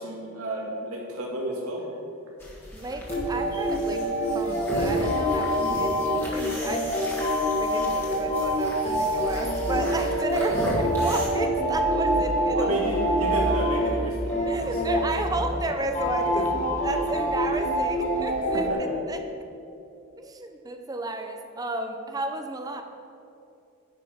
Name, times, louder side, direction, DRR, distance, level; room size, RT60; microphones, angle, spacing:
voice 1, 0.0-1.8 10.6-10.7 12.6-14.8 18.5-18.8, right 1 dB, 80° right, -2 dB, 1.9 m, -31 dB
sound 1, 2.4-11.3, equal, 10° left, 1.5 m, -35 dB
voice 2, 2.7-6.9 7.6-10.6 11.0-12.8 14.5-16.5 16.8-18.7 19.1-19.2 20.2-22.8, right 2 dB, 15° right, 6 dB, 0.5 m, -32 dB
sound 2, 3.1-18.7, equal, 30° left, 1.6 m, -26 dB
9.9 x 5.2 x 5.7 m, 2.7 s
head